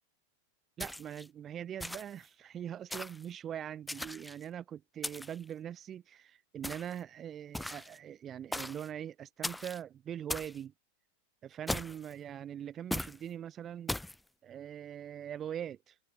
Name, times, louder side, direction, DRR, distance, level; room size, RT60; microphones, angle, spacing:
sound 1, 0.8-1.3 1.8-2.2 2.9-3.3 3.9-4.4 5.0-5.4 6.6-7.0 7.5-8.0 8.5-8.9 9.4-9.8 10.3-10.6 11.7-12.1 12.9-13.2 13.9-14.2, left 1 dB, 5° left, 0.5 m, -38 dB
voice 1, 0.8-10.7 11.4-13.9 14.4-16.0, right 9 dB, 25° right, 1.2 m, -42 dB
figure-of-eight pair, 90°, 0 cm